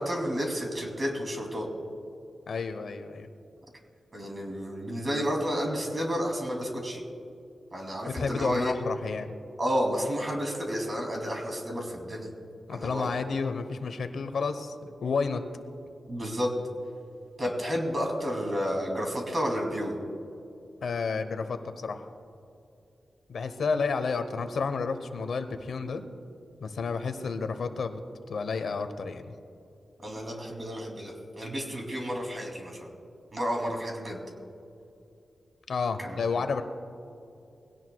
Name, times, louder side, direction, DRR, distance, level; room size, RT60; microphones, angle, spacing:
voice 1, 0.0-1.7 4.1-7.0 7.7-8.7 9.6-12.3 12.7-13.1 16.1-16.5 17.4-20.0 30.0-32.9 33.3-34.2 36.0-36.2, equal, 30° right, 1 dB, 2.7 m, -31 dB
voice 2, 2.5-3.3 8.1-9.3 12.7-15.4 20.8-22.1 23.3-26.0 26.6-28.0 28.3-29.3 35.7-36.6, left 4 dB, 75° left, 9 dB, 0.9 m, -31 dB
21.5 x 17.0 x 2.3 m, 2.7 s
wide cardioid pair, 145°, 0 cm